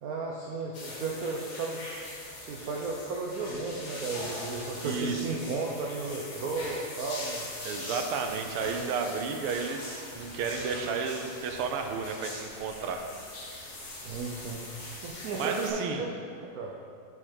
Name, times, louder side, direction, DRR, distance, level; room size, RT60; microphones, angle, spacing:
voice 1, 0.0-1.8 2.4-7.5 13.9-14.6 15.0-16.7, right 3 dB, 70° right, -2 dB, 0.8 m, -34 dB
sound 1, 0.7-15.7, left 1 dB, 85° left, 2.5 m, -41 dB
voice 2, 4.8-5.2 7.6-13.0 15.3-16.1, right 5 dB, 90° right, 5 dB, 1.6 m, -32 dB
8.4 x 5.0 x 4.4 m, 2.2 s
omnidirectional pair, 2.4 m